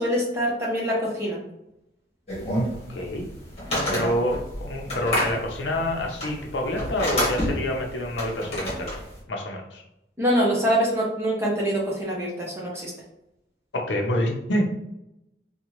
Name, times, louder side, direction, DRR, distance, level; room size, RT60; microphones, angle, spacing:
voice 1, 0.0-1.4 3.9-4.1 10.2-12.9, equal, 15° right, -4 dB, 0.8 m, -24 dB
sound 1, 2.3-9.2, left 1 dB, 35° left, 1.2 m, -29 dB
voice 2, 2.9-3.3 3.9-8.9 9.3-9.8 13.7-14.7, left 1 dB, 90° left, 1 dB, 0.7 m, -27 dB
3.7 x 2.2 x 3.0 m, 0.86 s
head